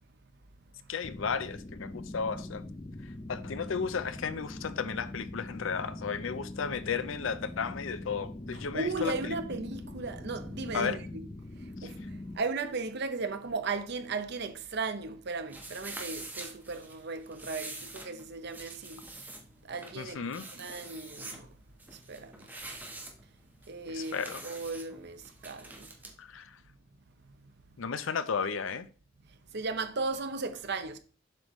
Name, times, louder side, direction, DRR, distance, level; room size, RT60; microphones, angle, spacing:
voice 1, 0.9-2.6 3.3-9.3 10.7-11.0 11.8-11.9 20.0-20.5 23.9-24.4 26.2-26.5 27.8-28.9, left 6 dB, 75° left, 0.6 m, -34 dB
sound 1, 1.0-12.4, left 1 dB, 20° left, 0.5 m, -42 dB
voice 2, 8.5-11.3 11.6-19.3 19.6-20.2 20.5-21.5 21.9-22.5 23.7-25.9 27.2-27.4 29.5-31.0, right 3 dB, 55° right, 0.7 m, -36 dB
sound 2, 15.5-26.1, right 2 dB, 10° right, 1.1 m, -46 dB
7.5 x 5.3 x 3.1 m
head